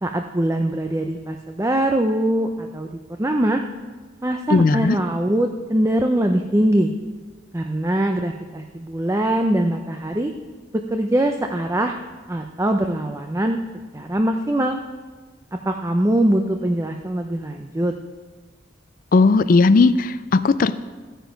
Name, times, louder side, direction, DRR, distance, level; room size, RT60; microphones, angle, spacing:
voice 1, 0.0-2.9 3.2-3.6 4.2-6.9 7.5-10.3 10.7-12.0 12.3-13.6 13.9-14.8 15.7-17.9, right 1 dB, 15° right, 4 dB, 0.5 m, -22 dB
voice 2, 4.5-5.0 19.1-20.8, left 3 dB, 45° left, 14 dB, 0.4 m, -16 dB
14.0 x 9.1 x 5.2 m, 1.4 s
head